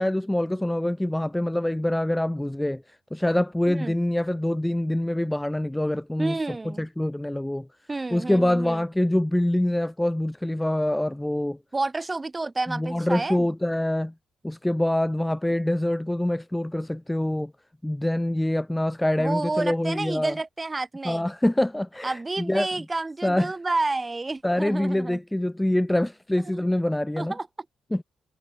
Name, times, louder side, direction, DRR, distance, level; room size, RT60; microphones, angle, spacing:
voice 1, 0.0-6.4 6.6-7.7 8.1-11.6 12.7-14.1 14.4-17.5 17.8-20.3 21.0-22.7 23.2-23.5 24.4-27.3 27.9-28.0, left 1 dB, 5° left, 1.5 m, -25 dB
voice 2, 6.2-6.9 7.9-8.8 11.7-13.5 19.2-21.3 22.0-25.2 26.5-26.6 27.2-27.5, right 3 dB, 20° right, 6.2 m, -30 dB
cardioid pair, 90°, 0 cm